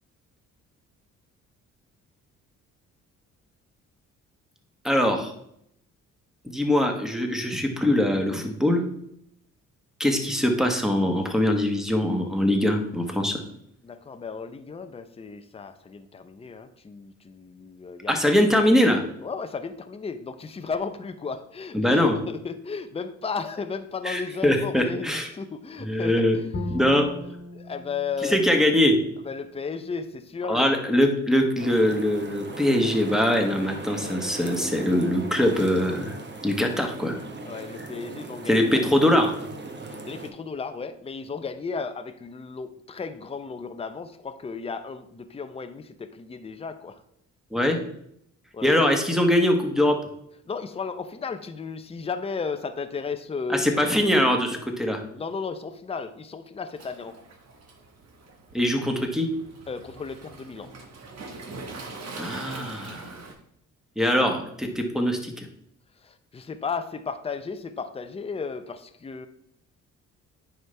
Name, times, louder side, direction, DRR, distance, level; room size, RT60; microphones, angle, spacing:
voice 1, 4.8-5.3 6.4-8.8 10.0-13.4 18.1-19.0 21.7-22.2 24.0-25.3 25.8-26.4 26.7-27.1 28.2-29.0 30.5-36.2 36.4-37.2 38.5-39.3 47.5-47.8 48.6-50.0 53.5-55.0 58.5-59.3 62.1-63.2 64.0-65.5, left 1 dB, ahead, 3 dB, 1.4 m, -22 dB
voice 2, 13.8-18.1 19.2-26.5 27.5-28.4 29.3-30.7 37.5-38.9 39.8-47.0 48.5-48.8 50.5-53.8 55.1-57.1 59.7-60.7 66.0-69.3, left 5 dB, 20° left, 9 dB, 0.6 m, -34 dB
Bowed string instrument, 26.5-29.7, left 1 dB, 35° left, 1.5 m, -38 dB
sound 1, 31.6-40.3, right 2 dB, 35° right, 1.2 m, -38 dB
Waves surf, 56.7-63.3, right 3 dB, 60° right, 1.7 m, -42 dB
9.1 x 5.1 x 3.3 m, 0.73 s
cardioid pair, 90°, 30 cm